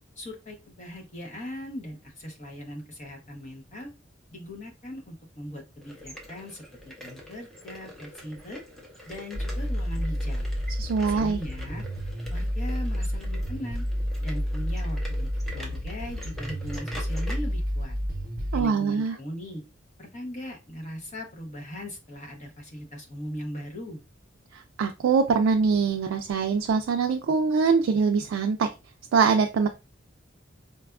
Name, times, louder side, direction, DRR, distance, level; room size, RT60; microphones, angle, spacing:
voice 1, 0.2-3.9 4.3-8.6 9.1-10.5 11.0-11.8 12.3-13.9 14.2-18.0 18.5-19.6 20.0-24.0, left 1 dB, 35° left, 1 dB, 0.8 m, -39 dB
sound 1, 5.8-17.3, equal, ahead, 0.6 m, -45 dB
sound 2, 9.3-18.6, equal, 45° right, 0.7 m, -30 dB
voice 2, 10.8-11.4 18.5-19.1 24.5-28.7 29.1-29.7, right 5 dB, 75° right, 4 dB, 0.3 m, -23 dB
4.0 x 2.3 x 2.3 m, 0.28 s
head